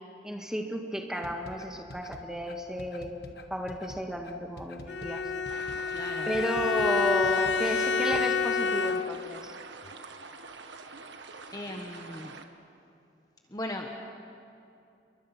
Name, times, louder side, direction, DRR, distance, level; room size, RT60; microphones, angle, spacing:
voice 1, 0.2-3.1 3.5-5.3 6.3-9.5, equal, 5° right, 2 dB, 1.8 m, -33 dB
sound 1, 1.1-8.2, left 1 dB, 60° left, 1.6 m, -46 dB
Bowed string instrument, 4.9-9.4, left 5 dB, 75° left, 0.8 m, -28 dB
sound 2, 5.5-12.5, right 4 dB, 85° right, 1.5 m, -46 dB
voice 2, 5.9-6.3 11.5-12.4 13.5-13.9, left 1 dB, 20° left, 2 dB, 1.3 m, -38 dB
28.5 x 23.0 x 6.0 m, 2.6 s
head